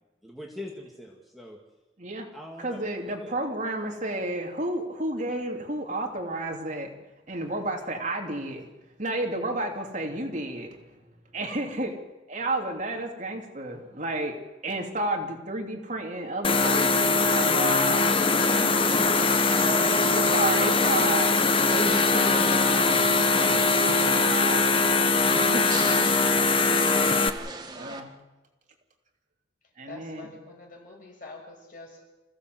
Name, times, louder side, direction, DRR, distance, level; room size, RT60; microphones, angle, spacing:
voice 1, 0.2-1.6 2.3-3.3, left 1 dB, ahead, -1 dB, 2.4 m, -44 dB
voice 2, 2.6-6.9 7.3-8.6 9.0-11.0 11.3-12.0 12.3-18.1 18.6-19.1 20.1-24.7 25.3-26.1 27.8-28.1 29.8-30.3, right 1 dB, 40° right, 2 dB, 3.3 m, -32 dB
sound 1, 16.4-27.3, left 3 dB, 30° left, 1.1 m, -22 dB
sound 2, 19.1-28.0, right 3 dB, 25° right, 1.8 m, -40 dB
voice 3, 29.9-32.0, left 3 dB, 50° left, 1 dB, 6.4 m, -45 dB
27.5 x 16.5 x 8.0 m, 1.1 s
head